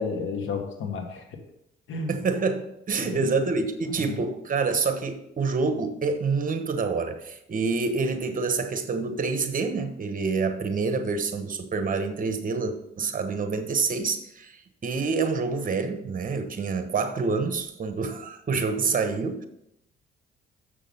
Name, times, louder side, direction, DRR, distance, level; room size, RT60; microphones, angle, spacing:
voice 1, 0.0-1.4 1.9-2.2 3.0-3.3 4.0-4.2, left 4 dB, 80° left, 4 dB, 1.6 m, -32 dB
voice 2, 2.1-19.5, right 4 dB, 45° right, 8 dB, 1.2 m, -27 dB
7.0 x 6.5 x 5.5 m, 0.80 s
cardioid pair, 90°, 20 cm